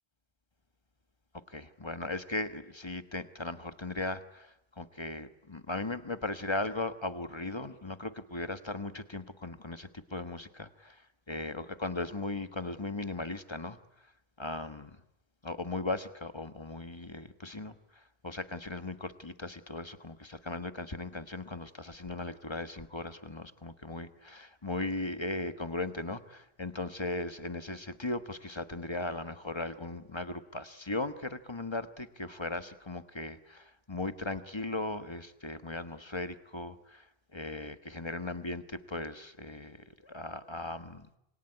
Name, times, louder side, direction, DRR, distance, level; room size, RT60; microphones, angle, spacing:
voice 1, 1.5-11.0 11.3-13.8 14.4-15.0 15.4-17.7 18.2-37.0 37.3-39.8 40.0-41.1, left 2 dB, 25° left, 10 dB, 1.4 m, -37 dB
26.5 x 22.5 x 9.9 m, 0.84 s
omnidirectional pair, 1.1 m